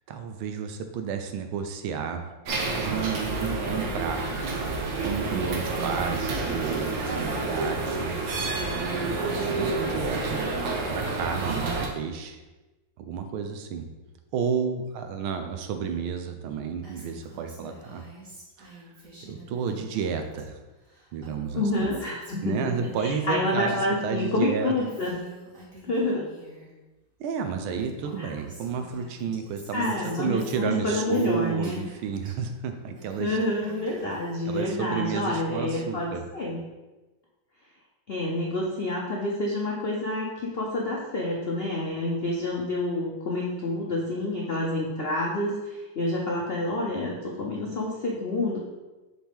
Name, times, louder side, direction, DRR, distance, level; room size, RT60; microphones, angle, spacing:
voice 1, 0.1-2.2 2.8-4.5 5.0-8.1 8.9-10.5 10.9-12.4 13.0-13.9 14.3-18.0 18.7-18.8 19.3-20.6 21.1-21.9 22.4-24.7 27.2-33.4 34.5-36.2, right 6 dB, 90° right, 6 dB, 1.6 m, -31 dB
sound 1, 2.5-11.9, right 3 dB, 70° right, 1.6 m, -29 dB
Female speech woman speaking, 16.8-20.4 20.7-24.0 24.3-26.7 27.3-27.4 27.6-32.3 32.7-34.7, right 1 dB, 40° right, 2.1 m, -49 dB
voice 2, 21.5-25.2 25.8-26.3 28.2-28.3 29.7-31.8 33.2-36.6 38.1-48.6, left 2 dB, 70° left, -2 dB, 0.5 m, -28 dB
7.3 x 4.5 x 3.6 m, 1.1 s
omnidirectional pair, 2.2 m